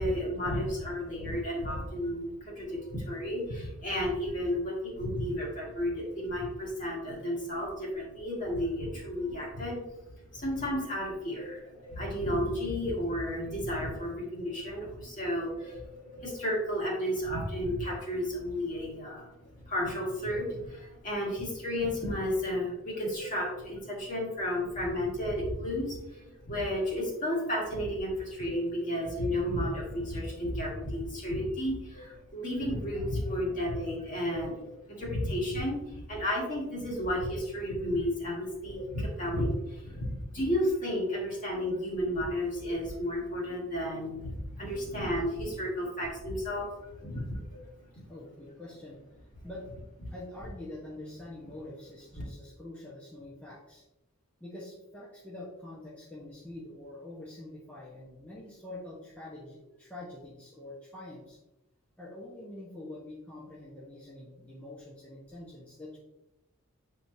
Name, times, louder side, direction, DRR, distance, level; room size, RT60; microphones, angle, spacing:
voice 1, 0.0-9.8 10.3-19.3 19.6-47.7, equal, 35° left, -3 dB, 2.0 m, -32 dB
voice 2, 48.1-49.0 49.4-49.6 50.1-53.8 54.4-61.4 62.0-66.0, left 1 dB, 5° left, -7 dB, 1.1 m, -45 dB
8.3 x 4.7 x 2.8 m, 0.91 s
head